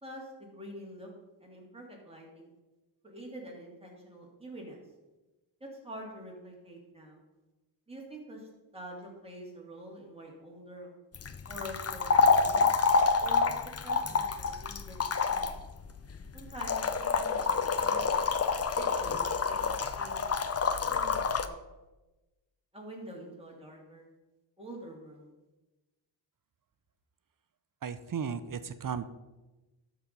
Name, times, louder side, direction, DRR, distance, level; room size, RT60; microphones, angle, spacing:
voice 1, 0.0-1.1 1.4-2.5 3.0-4.8 5.6-7.2 7.9-10.9 11.5-12.7 13.2-15.0 15.3-15.6 16.3-18.1 19.0-19.7 20.0-20.3 20.9-21.6 22.7-24.0 24.6-25.3, equal, 15° right, -2 dB, 2.7 m, -46 dB
sound 1, 11.1-21.5, left 5 dB, 35° left, 0.6 m, -28 dB
voice 2, 27.8-29.0, right 7 dB, 45° right, 13 dB, 0.6 m, -35 dB
12.5 x 4.8 x 5.3 m, 1.1 s
wide cardioid pair, 95°, 44 cm